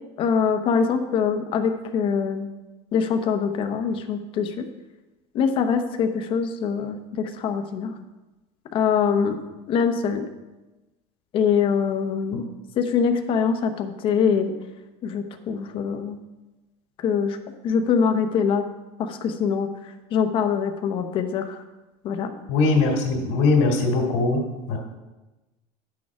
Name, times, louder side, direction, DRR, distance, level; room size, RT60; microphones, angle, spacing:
voice 1, 0.2-2.5 2.9-4.6 5.3-7.9 8.7-9.4 9.7-10.3 11.3-12.5 12.8-14.5 15.0-16.2 17.0-17.4 17.6-18.6 19.0-21.6 22.0-22.3, left 6 dB, 35° left, 6 dB, 0.8 m, -23 dB
voice 2, 22.5-24.4 24.7-24.8, left 3 dB, 85° left, 1 dB, 2.3 m, -20 dB
10.5 x 6.4 x 4.8 m, 1.1 s
cardioid pair, 170°, 15 cm